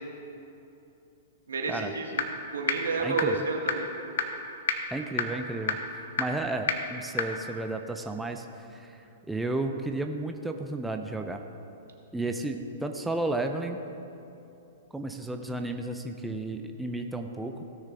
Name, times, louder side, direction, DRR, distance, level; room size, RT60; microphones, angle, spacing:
voice 1, 1.5-2.3 2.5-3.9, right 3 dB, 80° right, 1 dB, 1.6 m, -30 dB
sound 1, 2.2-2.3 2.7-2.8 3.2-3.3 3.7-3.8 4.2-4.3 4.7-4.8 5.2-5.3 5.7-5.8 6.2-6.3 6.7-6.8 7.2-7.3, left 8 dB, 65° left, 0.9 m, -25 dB
voice 2, 3.0-3.5 4.9-11.4 12.1-13.8 14.9-17.6, right 2 dB, 5° right, 4 dB, 0.6 m, -33 dB
17.0 x 6.5 x 3.8 m, 2.8 s
hypercardioid pair, 115°, 0 cm